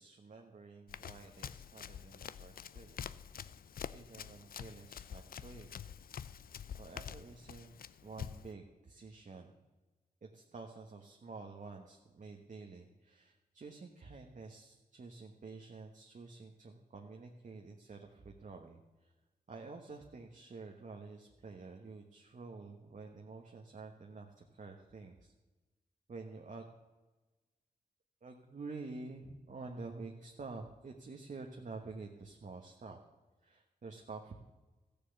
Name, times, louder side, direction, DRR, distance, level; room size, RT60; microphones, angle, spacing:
voice 1, 0.0-3.5 3.9-5.7 6.8-7.7 8.0-9.5 10.2-19.1 19.5-25.3 26.1-26.7 28.2-33.0 33.4-34.4, right 4 dB, 55° right, 2 dB, 1.2 m, -49 dB
Run, 0.9-8.5, left 8 dB, 65° left, 0.4 m, -47 dB
14.0 x 6.8 x 8.0 m, 1.2 s
cardioid pair, 65°, 16 cm